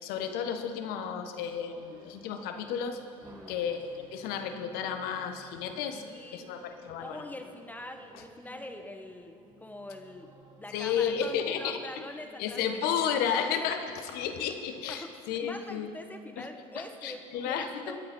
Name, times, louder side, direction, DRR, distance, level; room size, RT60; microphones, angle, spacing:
voice 1, 0.0-3.0 3.5-6.0 6.3-7.2 8.1-8.2 10.7-11.8 12.4-15.9 16.4-16.5 16.7-17.9, left 7 dB, 65° left, 7 dB, 1.5 m, -32 dB
sound 1, 1.4-14.1, right 2 dB, 25° right, 2.5 m, -56 dB
voice 2, 3.2-3.5 5.9-6.5 7.0-12.9 13.6-13.7 14.9-15.1 15.4-18.0, left 1 dB, 10° left, 5 dB, 1.5 m, -43 dB
22.5 x 8.5 x 5.4 m, 2.6 s
hypercardioid pair, 75°, 17 cm